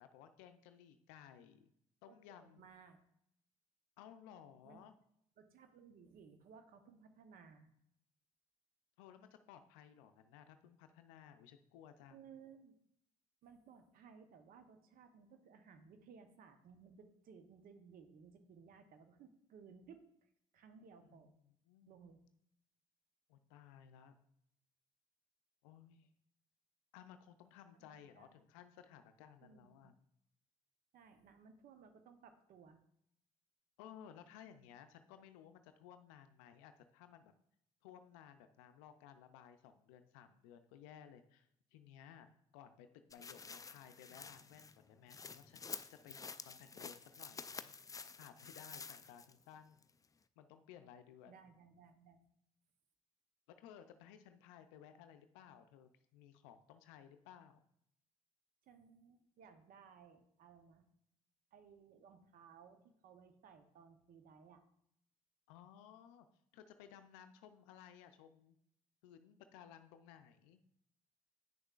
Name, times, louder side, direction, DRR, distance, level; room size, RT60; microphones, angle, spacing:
voice 1, 0.0-1.7 2.0-2.7 4.0-4.9 9.0-12.2 21.1-22.0 23.3-24.1 25.6-26.1 26.9-30.0 33.8-37.3 37.8-47.7 48.1-49.8 50.4-51.4 53.6-57.6 65.5-66.3 66.5-68.6 69.0-70.6, left 9 dB, 85° left, 9 dB, 0.5 m, -58 dB
voice 2, 2.1-3.0 4.6-4.8 5.4-7.7 12.1-12.7 13.4-21.3 21.9-22.2 27.8-28.3 29.4-29.9 30.9-32.8 51.3-52.3 58.7-60.8 61.5-64.6, right 6 dB, 65° right, 8 dB, 0.9 m, -60 dB
sound 1, 43.1-49.4 49.8-49.9, left 5 dB, 20° left, 0.4 m, -50 dB
8.6 x 6.4 x 2.4 m, 0.73 s
hypercardioid pair, 50°, 16 cm